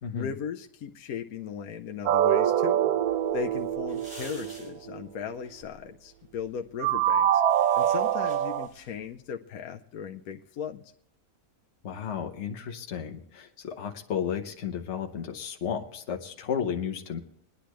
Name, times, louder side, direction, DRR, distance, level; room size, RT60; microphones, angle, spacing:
voice 1, 0.1-2.8 3.3-7.4 7.8-10.9, left 7 dB, 80° left, 4 dB, 1.1 m, -37 dB
sound 1, 2.1-5.0 6.8-8.7, right 10 dB, 80° right, 1.1 m, -25 dB
sound 2, 3.0-9.1, right 1 dB, 40° right, 3.5 m, -52 dB
voice 2, 11.8-17.2, left 8 dB, 50° left, 3 dB, 1.2 m, -33 dB
21.5 x 10.0 x 3.1 m, 0.70 s
omnidirectional pair, 1.6 m